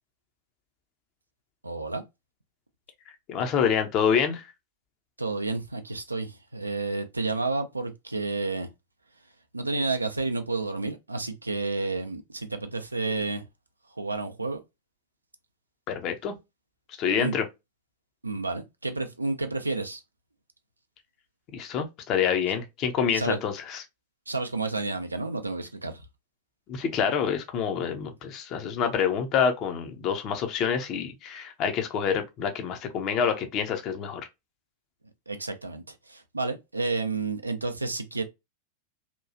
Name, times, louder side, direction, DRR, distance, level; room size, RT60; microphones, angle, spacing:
voice 1, 1.6-2.0 5.2-8.7 9.5-13.5 14.0-14.6 17.1-17.4 18.2-20.0 23.1-23.4 24.3-26.0 35.3-38.2, right 3 dB, 80° right, 0.4 m, -30 dB
voice 2, 3.3-4.4 15.9-16.3 17.0-17.4 21.5-23.8 26.7-34.2, left 7 dB, 35° left, 0.6 m, -27 dB
2.9 x 2.3 x 2.5 m
figure-of-eight pair, 90°, 0 cm